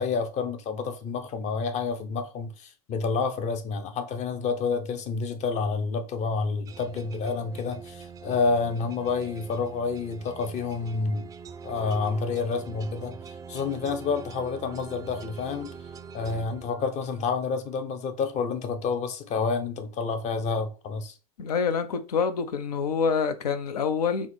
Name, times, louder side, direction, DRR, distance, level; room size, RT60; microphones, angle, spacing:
voice 1, 0.0-11.3 11.6-13.2 13.5-15.7 16.1-21.1, left 4 dB, 35° left, 0.6 m, -29 dB
sound 1, 6.7-17.3, right 6 dB, 15° right, 0.4 m, -43 dB
voice 2, 21.4-24.3, left 6 dB, 75° left, 0.5 m, -26 dB
3.5 x 2.0 x 4.1 m
hypercardioid pair, 85°, 20 cm